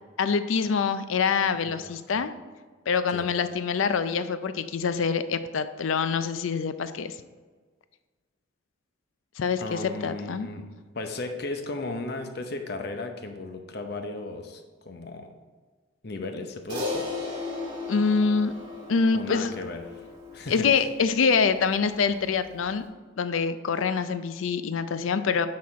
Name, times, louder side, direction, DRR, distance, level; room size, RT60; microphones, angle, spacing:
voice 1, 0.2-2.3 2.9-7.1 9.4-10.5 17.9-18.5 18.9-19.5 20.5-22.8 23.2-25.5, left 5 dB, 75° left, 11 dB, 0.4 m, -25 dB
voice 2, 1.7-2.3 3.1-3.3 9.6-10.7 10.9-15.3 16.0-17.1 19.1-19.8 20.3-20.7, left 2 dB, 55° left, 5 dB, 0.7 m, -35 dB
Crash cymbal, 16.7-21.3, left 3 dB, 20° right, 1.8 m, -35 dB
8.5 x 4.2 x 4.2 m, 1.4 s
head